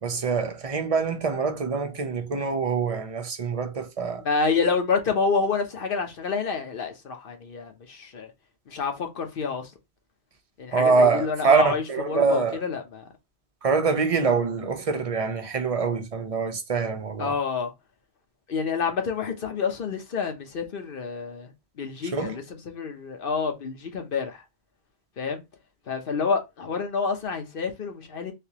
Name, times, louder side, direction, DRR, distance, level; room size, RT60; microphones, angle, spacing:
voice 1, 0.0-4.2 10.7-12.6 13.6-17.3 22.1-22.4, right 4 dB, 40° right, 0.6 m, -24 dB
voice 2, 4.2-8.3 8.7-9.7 10.6-13.0 17.2-17.7 18.5-21.5 21.8-24.4 25.2-25.4 25.9-28.3, left 5 dB, 60° left, 1.0 m, -28 dB
3.4 x 2.8 x 2.8 m
omnidirectional pair, 1.1 m